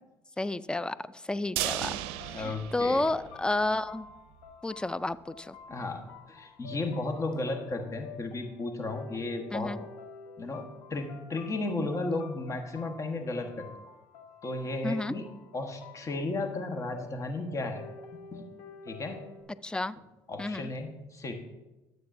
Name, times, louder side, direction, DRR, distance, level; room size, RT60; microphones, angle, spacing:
voice 1, 0.4-1.0 1.2-1.9 2.3-4.1 4.6-5.6 9.5-9.8 14.8-15.1 19.6-20.0 20.4-20.7, left 2 dB, 10° left, 17 dB, 0.3 m, -31 dB
sound 1, 1.6-19.4, left 5 dB, 85° left, 1.2 m, -50 dB
sound 2, 1.6-3.7 4.0-4.1 4.5-4.6, right 14 dB, 80° right, 0.4 m, -35 dB
voice 2, 2.3-3.1 5.7-9.8 10.4-13.7 14.4-15.3 15.5-17.8 18.3-18.4 18.8-19.2 20.3-21.3, left 2 dB, 35° left, 5 dB, 1.2 m, -34 dB
13.0 x 7.9 x 2.6 m, 1.1 s
supercardioid pair, 80°, 10 cm